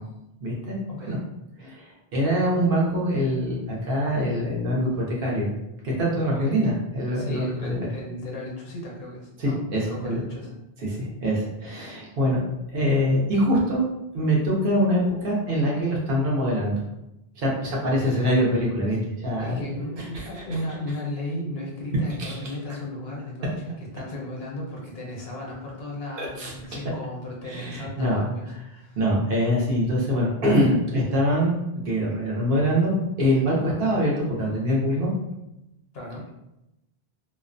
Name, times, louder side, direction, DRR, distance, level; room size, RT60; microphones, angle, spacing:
voice 1, 0.4-0.8 1.1-1.2 1.6-1.8 2.1-5.5 5.8-7.8 9.4-10.2 10.9-12.4 12.7-13.8 14.1-16.8 17.4-20.4 22.2-22.4 26.2-26.5 27.5-28.2 29.0-31.6 31.8-35.1, equal, 65° right, -3 dB, 0.8 m, -24 dB
voice 2, 7.1-10.5 11.0-11.1 19.4-29.0 35.9-36.3, left 1 dB, 75° left, -2 dB, 0.9 m, -35 dB
2.4 x 2.1 x 2.5 m, 0.90 s
omnidirectional pair, 1.0 m